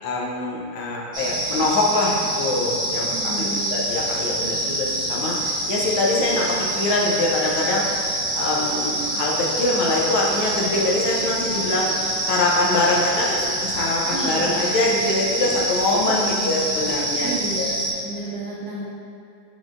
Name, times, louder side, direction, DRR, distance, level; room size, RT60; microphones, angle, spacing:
voice 1, 0.0-7.9 8.3-11.9 12.3-17.7, left 2 dB, 90° left, -3 dB, 1.5 m, -24 dB
sound 1, 1.1-17.9, right 1 dB, 5° right, 0.7 m, -26 dB
voice 2, 3.1-3.8 9.0-9.2 14.1-14.7 16.1-16.7 17.2-18.8, right 2 dB, 85° right, -5 dB, 0.8 m, -32 dB
sound 2, 8.5-13.5, left 1 dB, 55° left, 0.9 m, -41 dB
6.1 x 3.6 x 2.4 m, 2.6 s
omnidirectional pair, 2.2 m